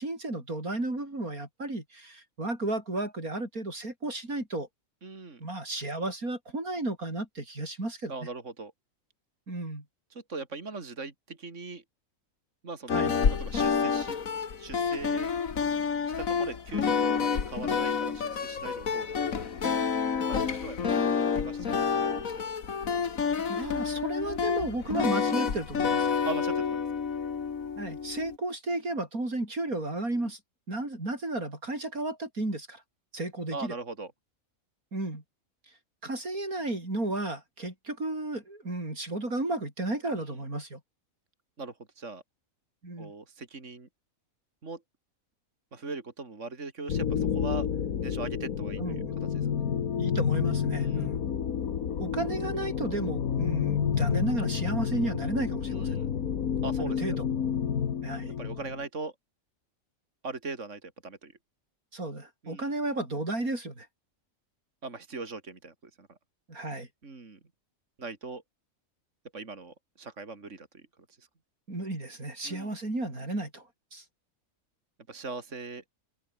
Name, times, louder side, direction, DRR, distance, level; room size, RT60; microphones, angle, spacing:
voice 1, 0.0-4.7 5.4-8.1 9.5-9.8 12.9-13.1 23.5-26.2 27.8-30.4 30.7-32.8 33.1-33.7 34.9-35.2 36.0-40.8 42.8-43.1 48.8-49.1 50.0-51.2 52.0-56.0 56.8-57.3 58.0-58.3 61.9-63.9 66.5-66.9 71.7-74.0, right 2 dB, 85° right, 7.3 m, -33 dB
voice 2, 5.0-5.4 8.1-8.7 10.1-11.8 12.6-13.0 13.3-14.2 14.6-15.3 16.2-19.3 20.3-22.5 26.2-26.8 33.5-34.1 40.1-40.2 41.6-42.2 43.0-43.9 44.6-44.8 45.7-47.7 48.0-49.6 50.7-51.1 55.7-56.1 56.6-57.0 58.3-59.1 60.2-61.4 62.4-62.7 64.8-66.2 67.0-67.4 68.0-68.4 69.3-70.8 71.1-71.3 72.4-72.7 75.1-75.8, right 3 dB, 55° right, 3.2 m, -40 dB
sound 1, 12.9-28.4, left 6 dB, 70° left, 2.1 m, -29 dB
sound 2, 46.9-58.9, left 8 dB, 90° left, 1.8 m, -30 dB
omnidirectional pair, 1.5 m